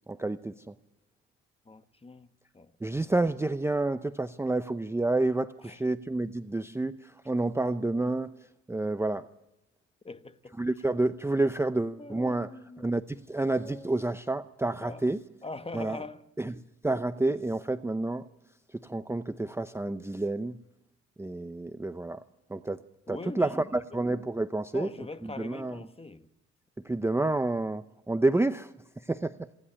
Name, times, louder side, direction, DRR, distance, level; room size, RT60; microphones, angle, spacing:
voice 1, 0.1-0.7 2.8-8.3 8.7-9.3 10.6-12.5 12.8-15.2 15.7-16.0 16.4-16.5 16.8-18.3 18.8-20.6 21.2-22.2 22.5-22.8 23.1-24.9 25.2-25.8 26.8-29.5, right 2 dB, 10° right, 0.7 m, -29 dB
voice 2, 1.6-2.3 2.5-2.7 3.0-3.1 5.6-5.8 10.0-10.6 12.0-13.0 13.6-14.0 14.8-15.1 15.4-16.2 23.1-24.0 24.7-26.3, left 3 dB, 20° left, 1.3 m, -43 dB
27.0 x 11.0 x 10.0 m
cardioid pair, 90°, 30 cm